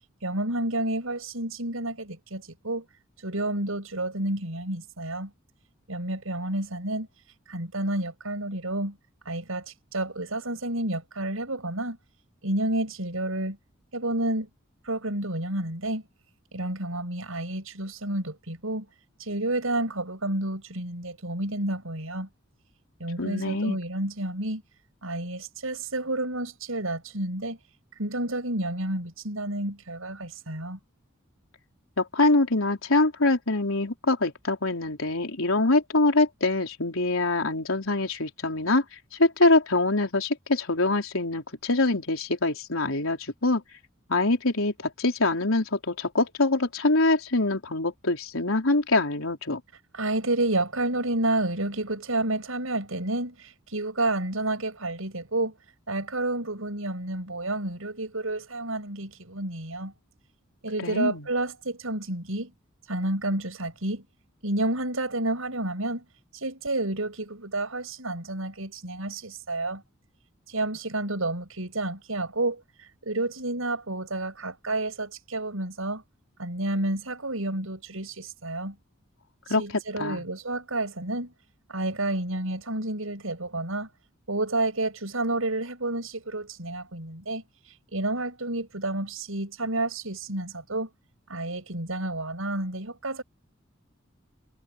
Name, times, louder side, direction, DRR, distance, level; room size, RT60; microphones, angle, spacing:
voice 1, 0.2-2.8 3.2-5.3 5.9-7.1 7.5-9.0 9.2-12.0 12.4-13.6 13.9-14.5 14.8-16.0 16.5-18.9 19.2-22.3 23.0-24.6 25.0-27.6 27.9-30.8 49.9-55.6 55.9-59.9 60.6-62.5 62.8-64.0 64.4-66.0 66.3-69.8 70.5-76.0 76.4-78.7 79.5-81.3 81.7-83.9 84.3-90.9 91.3-93.2, right 2 dB, 80° right, 6.6 m, -30 dB
voice 2, 23.2-23.8 32.0-43.6 44.1-49.6 60.8-61.3 79.5-80.3, left 2 dB, 75° left, 4.1 m, -24 dB
head